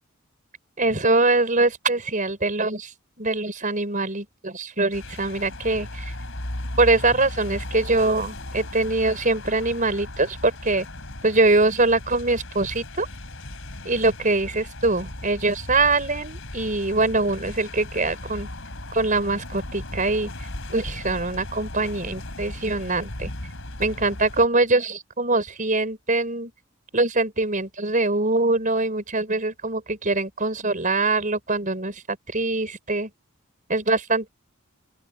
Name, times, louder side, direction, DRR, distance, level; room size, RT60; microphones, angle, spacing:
voice 1, 0.8-2.9 3.2-6.1 6.8-10.9 11.2-13.1 13.8-18.5 18.9-23.3 23.8-26.5 26.9-33.1 33.7-34.3, right 2 dB, 40° right, 5.0 m, -23 dB
sound 1, 4.9-24.5, left 1 dB, 65° left, 4.1 m, -36 dB
open air
head